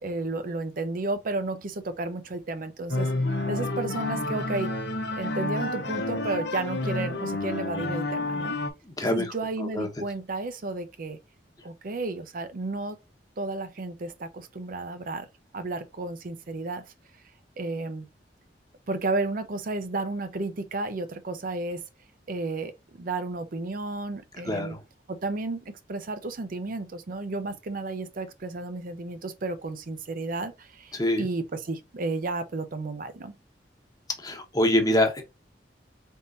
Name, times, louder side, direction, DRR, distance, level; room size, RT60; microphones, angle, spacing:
voice 1, 0.0-3.1 3.5-4.7 5.2-8.6 9.0-11.2 11.6-13.0 13.4-15.3 15.5-16.8 17.6-18.1 18.9-21.8 22.3-24.8 25.1-33.3, right 2 dB, 50° right, 0.6 m, -32 dB
sound 1, 2.9-8.7, left 2 dB, 70° left, 0.8 m, -29 dB
voice 2, 8.8-9.3 9.6-9.9 24.5-24.8 30.9-31.3 34.2-35.2, left 1 dB, 20° left, 0.9 m, -25 dB
4.2 x 3.6 x 2.6 m
head